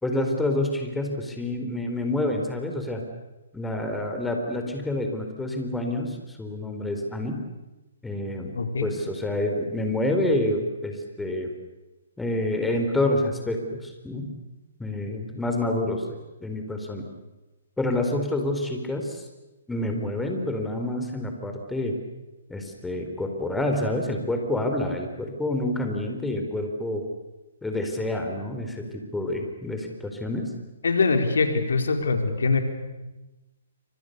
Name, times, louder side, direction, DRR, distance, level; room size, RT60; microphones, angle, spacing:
voice 1, 0.0-3.0 3.5-7.4 8.0-8.5 8.8-11.5 12.2-14.3 14.8-17.0 17.8-19.2 19.7-21.9 22.5-27.0 27.6-30.5, left 1 dB, 5° left, 3 dB, 4.4 m, -28 dB
voice 2, 8.5-8.9 30.8-32.6, left 4 dB, 70° left, 6 dB, 4.2 m, -23 dB
28.5 x 26.5 x 6.8 m, 1.1 s
figure-of-eight pair, 135°, 0 cm